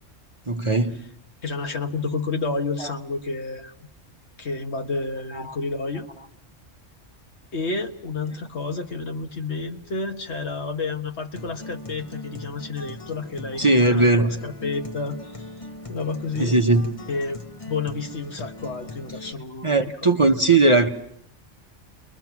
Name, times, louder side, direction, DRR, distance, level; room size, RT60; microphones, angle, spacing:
voice 1, 0.5-0.9 2.8-2.9 5.3-5.6 13.6-14.3 16.4-16.8 19.6-20.9, right 2 dB, 25° right, 1.0 m, -19 dB
voice 2, 1.4-3.7 4.4-6.1 7.5-15.2 15.9-16.6 17.1-17.4 17.7-19.9, left 3 dB, 60° left, 1.6 m, -30 dB
Acoustic guitar, 11.3-19.3, left 2 dB, 25° left, 1.3 m, -39 dB
30.0 x 22.5 x 6.0 m
omnidirectional pair, 1.3 m